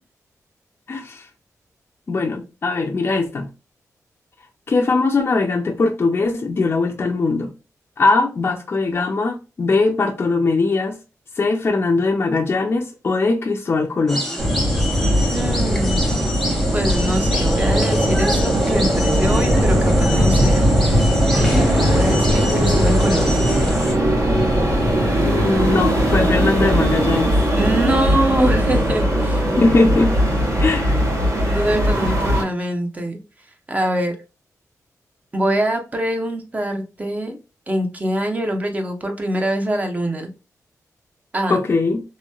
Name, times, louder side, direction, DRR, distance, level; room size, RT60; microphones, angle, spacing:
voice 1, 0.9-1.3 2.1-3.5 4.7-7.5 8.0-11.0 11.4-14.3 25.2-27.3 29.6-30.2 30.6-31.0 41.5-42.0, left 3 dB, 40° left, 0.4 m, -20 dB
sound 1, 14.1-23.9, left 1 dB, ahead, 0.9 m, -28 dB
sound 2, 14.4-32.4, equal, 60° right, 1.2 m, -18 dB
voice 2, 15.3-16.1 16.7-21.0 21.3-23.3 27.5-29.4 31.4-33.2 33.7-34.2 35.3-37.4 37.7-40.3 41.3-41.6, right 1 dB, 25° right, 0.7 m, -24 dB
3.0 x 2.7 x 2.3 m
wide cardioid pair, 95°, 6 cm